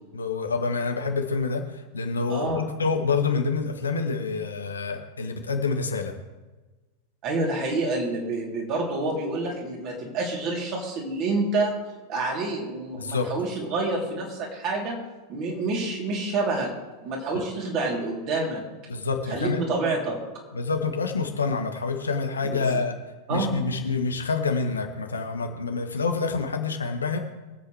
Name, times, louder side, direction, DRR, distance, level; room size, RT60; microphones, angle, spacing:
voice 1, 0.1-1.6 1.9-6.1 12.9-13.3 18.9-19.6 20.5-22.9 23.3-27.2, left 4 dB, 75° left, 5 dB, 1.3 m, -27 dB
voice 2, 2.3-2.6 7.2-11.8 12.1-15.0 15.3-16.7 17.0-18.6 19.3-20.2 22.4-22.6 23.3-23.5, right 3 dB, 40° right, -2 dB, 3.4 m, -28 dB
24.0 x 8.4 x 3.4 m, 1.2 s
figure-of-eight pair, 90°, 0 cm